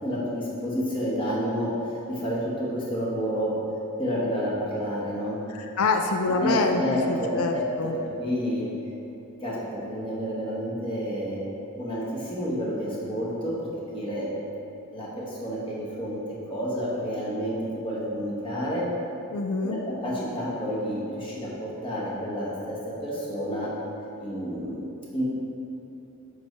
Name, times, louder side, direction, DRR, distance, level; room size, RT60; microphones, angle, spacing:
voice 1, 0.0-3.5 4.0-5.4 6.4-7.7 8.2-8.7 9.4-11.4 11.8-13.6 13.9-14.3 14.9-16.2 16.5-18.9 19.6-23.7 24.2-24.9 25.1-25.2, equal, 25° left, -7 dB, 1.2 m, -29 dB
voice 2, 5.5-6.8 7.1-8.0 19.3-19.8, left 3 dB, 80° left, 4 dB, 0.4 m, -26 dB
7.2 x 3.2 x 5.4 m, 3.0 s
head